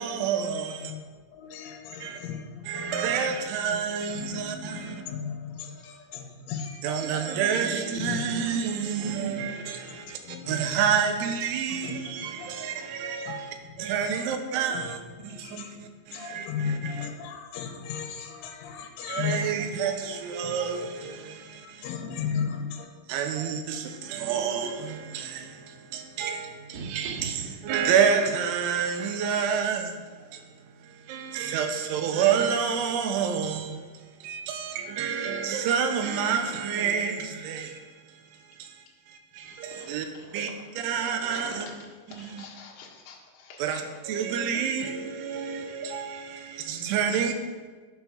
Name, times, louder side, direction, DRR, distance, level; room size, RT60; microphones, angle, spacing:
voice 1, 0.0-0.9 2.0-2.2 2.7-5.0 6.8-15.0 15.2-16.9 19.1-21.9 23.1-40.0 40.3-40.5 40.8-41.7 42.2-42.3 43.6-43.8 44.1-47.3, right 7 dB, 85° right, 3.2 m, -29 dB
voice 2, 0.5-7.3 7.9-8.4 9.0-10.9 11.8-13.4 13.6-14.3 14.7-19.8 20.4-20.5 21.3-23.5 30.2-30.4, left 6 dB, 85° left, 3.4 m, -37 dB
voice 3, 13.2-14.1 14.6-14.7 38.5-39.0 39.4-44.0 45.0-45.1, left 4 dB, 60° left, 2.8 m, -49 dB
sound 1, 22.9-33.0, right 4 dB, 60° right, 3.0 m, -48 dB
12.0 x 4.5 x 5.7 m
omnidirectional pair, 5.4 m